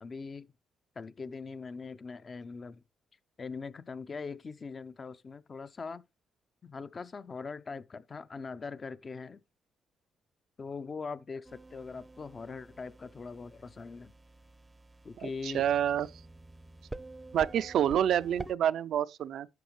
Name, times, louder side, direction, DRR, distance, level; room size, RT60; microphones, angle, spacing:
voice 1, 0.0-0.5 1.0-2.8 3.4-6.0 6.6-9.4 10.6-14.1 15.0-15.7, left 4 dB, 35° left, 0.6 m, -41 dB
sound 1, 11.4-18.6, right 2 dB, 15° right, 0.6 m, -48 dB
voice 2, 15.2-16.1 17.3-19.5, right 10 dB, 70° right, 0.4 m, -28 dB
11.0 x 7.1 x 3.1 m
cardioid pair, 90°, 0 cm